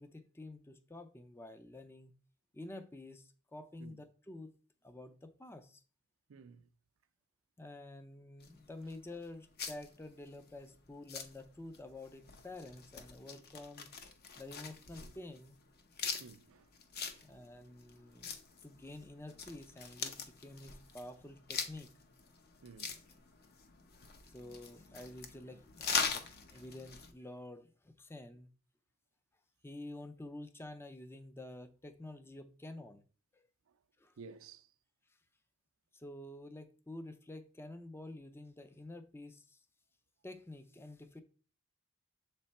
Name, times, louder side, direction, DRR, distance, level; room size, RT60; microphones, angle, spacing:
voice 1, 0.0-2.1 2.5-4.5 4.8-5.8 7.6-13.9 14.4-15.6 17.2-18.3 18.6-21.9 24.3-26.3 26.5-28.5 29.6-33.0 33.3-33.5 34.0-34.2 35.9-39.7 40.2-41.2, left 2 dB, 10° left, 0.4 m, -49 dB
voice 2, 6.3-6.7 16.2-16.7 17.1-17.3 22.6-23.0 34.2-34.7, right 5 dB, 85° right, 0.5 m, -53 dB
sound 1, 8.4-27.1, left 5 dB, 50° left, 0.8 m, -43 dB
7.2 x 3.3 x 4.2 m
head